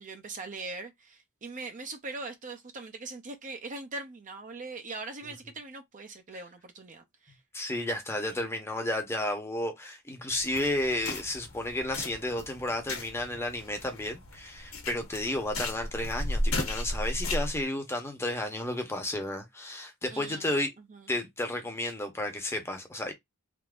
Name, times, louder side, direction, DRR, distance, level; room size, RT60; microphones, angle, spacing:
voice 1, 0.0-7.4 20.1-20.6 20.9-21.1, right 3 dB, 35° right, 0.6 m, -41 dB
voice 2, 7.5-20.7 21.1-23.1, left 1 dB, 10° left, 0.8 m, -32 dB
sound 1, 10.3-17.6, left 1 dB, 75° left, 1.1 m, -35 dB
3.5 x 2.6 x 2.4 m
head